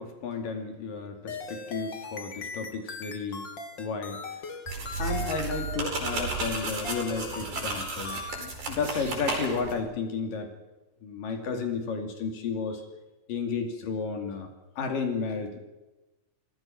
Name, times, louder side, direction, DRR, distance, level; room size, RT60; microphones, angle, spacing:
voice 1, 0.0-3.5 3.8-4.2 5.0-10.5 11.0-12.8 13.3-14.5 14.8-15.6, left 5 dB, 80° left, 5 dB, 4.3 m, -32 dB
sound 1, 1.3-8.5, left 4 dB, 40° left, 2.2 m, -39 dB
sound 2, 4.7-9.8, right 3 dB, 90° right, 6.6 m, -33 dB
28.0 x 19.0 x 6.0 m, 1.1 s
omnidirectional pair, 3.9 m